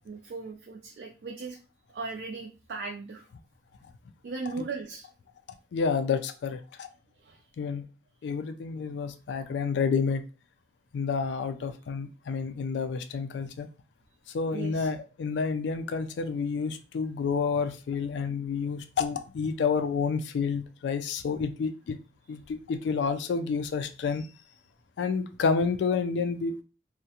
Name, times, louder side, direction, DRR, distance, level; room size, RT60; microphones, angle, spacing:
voice 1, 0.0-1.6 1.9-3.2 4.2-5.1 7.2-7.4 14.5-14.9, right 4 dB, 70° right, 1 dB, 0.3 m, -37 dB
voice 2, 5.7-6.9 7.6-7.9 8.2-10.2 10.9-13.7 14.3-22.0 22.3-24.3 25.0-26.6, left 5 dB, 80° left, 10 dB, 0.3 m, -29 dB
2.4 x 2.1 x 2.7 m, 0.33 s
head